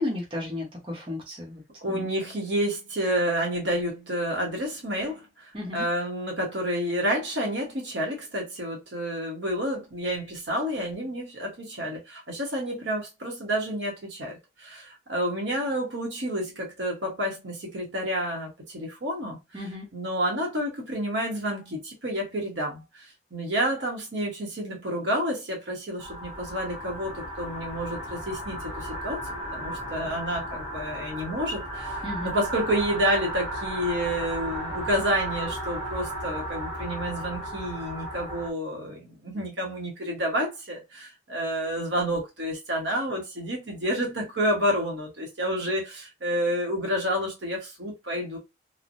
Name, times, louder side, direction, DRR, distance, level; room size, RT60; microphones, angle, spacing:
voice 1, 0.0-2.1 5.5-5.8 19.5-19.9 32.0-32.4, left 2 dB, 25° right, 0.8 m, -34 dB
voice 2, 1.8-19.4 19.9-29.2 29.5-48.4, equal, 75° right, 1.1 m, -29 dB
sound 1, 26.0-38.5, right 1 dB, 5° right, 1.1 m, -34 dB
3.1 x 2.1 x 2.6 m
head